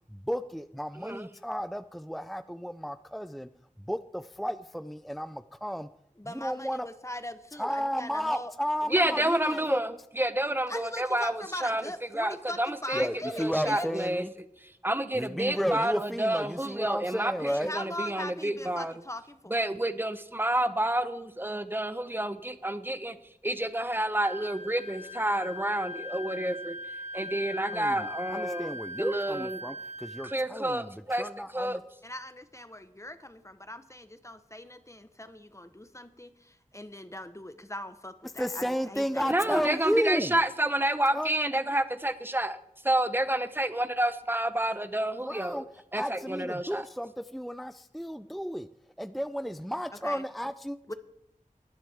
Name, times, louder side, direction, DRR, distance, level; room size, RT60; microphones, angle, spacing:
voice 1, 0.1-3.5 3.8-5.9 6.2-6.9 7.6-9.8 12.9-14.3 15.1-17.7 27.7-31.8 38.4-40.4 41.1-41.3 45.2-45.6 46.0-48.7 49.0-50.9, equal, ahead, 11 dB, 0.4 m, -33 dB
voice 2, 6.2-8.5 8.8-9.7 10.7-13.9 17.4-19.7 32.0-39.8 50.0-50.2 50.9-51.0, left 1 dB, 20° left, 10 dB, 1.0 m, -40 dB
voice 3, 8.9-9.9 10.2-11.8 12.1-13.1 13.3-14.2 14.8-17.3 17.7-18.9 19.5-23.2 23.4-26.8 27.1-28.7 29.0-29.6 30.2-31.3 31.5-31.8 39.3-42.6 42.8-45.6 45.9-46.8, right 1 dB, 15° right, 11 dB, 0.9 m, -29 dB
Wind instrument woodwind instrument, 24.2-30.4, left 1 dB, 50° right, 1.4 m, -40 dB
19.0 x 11.0 x 3.5 m, 0.80 s
wide cardioid pair, 50°, 14 cm